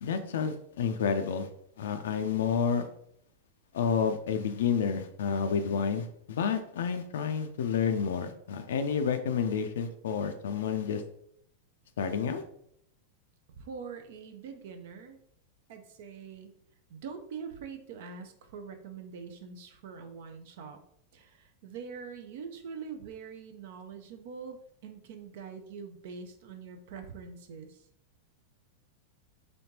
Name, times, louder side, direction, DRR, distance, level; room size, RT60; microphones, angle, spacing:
voice 1, 0.0-1.5 1.8-2.9 3.7-11.0 12.0-12.4, left 6 dB, 60° left, 8 dB, 0.3 m, -30 dB
voice 2, 13.5-15.2 15.7-16.6 16.9-20.8 21.1-27.9, right 6 dB, 55° right, 7 dB, 0.4 m, -44 dB
4.3 x 2.8 x 2.9 m, 0.69 s
figure-of-eight pair, 90°, 0 cm